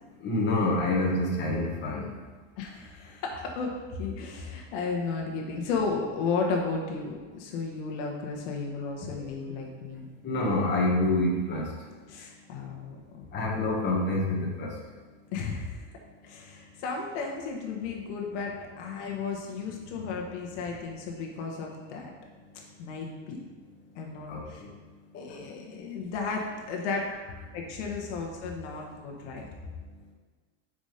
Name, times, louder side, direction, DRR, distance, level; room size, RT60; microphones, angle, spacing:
voice 1, 0.2-2.1 9.2-9.3 10.2-11.7 13.3-14.7 24.3-24.4 25.1-25.4, left 2 dB, 30° left, -3 dB, 1.4 m, -27 dB
voice 2, 2.6-10.1 12.1-13.3 15.3-15.9 16.2-22.1 22.8-23.4 23.9-24.6 25.2-27.1 27.5-29.4, left 4 dB, 70° left, 0 dB, 1.3 m, -34 dB
5.6 x 5.1 x 5.0 m, 1.4 s
supercardioid pair, 145°, 37 cm